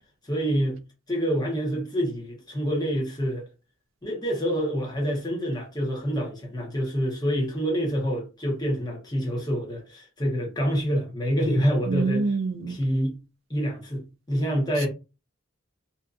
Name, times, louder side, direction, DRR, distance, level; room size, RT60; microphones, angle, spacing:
voice 1, 0.3-0.8 1.1-3.5 4.0-12.3 12.7-13.2 13.5-14.9, equal, 20° left, 0.9 m, -27 dB
voice 2, 11.9-12.8, right 4 dB, 75° right, 0.4 m, -26 dB
2.7 x 2.5 x 2.4 m
head